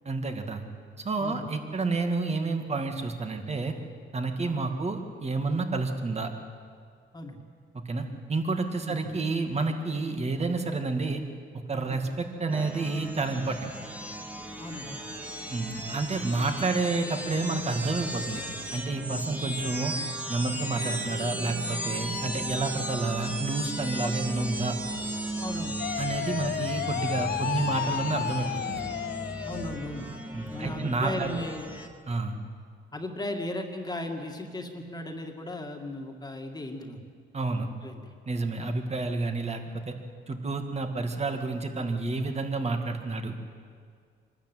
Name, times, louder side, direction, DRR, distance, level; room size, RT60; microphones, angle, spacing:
voice 1, 0.1-0.6 1.0-3.7 4.1-6.3 7.7-11.2 11.7-13.7 15.5-18.4 18.7-19.9 20.3-24.8 26.0-28.8 30.3-31.3 32.1-32.4 37.3-37.7 38.3-39.9 40.3-43.3, right 3 dB, 35° right, 5 dB, 2.4 m, -30 dB
sound 1, 12.5-31.9, right 1 dB, 5° right, 2.2 m, -36 dB
voice 2, 14.6-15.1 15.9-16.1 19.4-19.7 21.0-21.1 24.0-24.1 25.4-25.8 29.4-31.7 32.9-37.0 37.8-38.1 38.4-38.6, left 1 dB, 20° left, 3 dB, 2.3 m, -37 dB
sound 2, 25.8-29.9, left 9 dB, 55° left, 0.7 m, -32 dB
24.0 x 13.0 x 9.3 m, 2.1 s
cardioid pair, 90°, 20 cm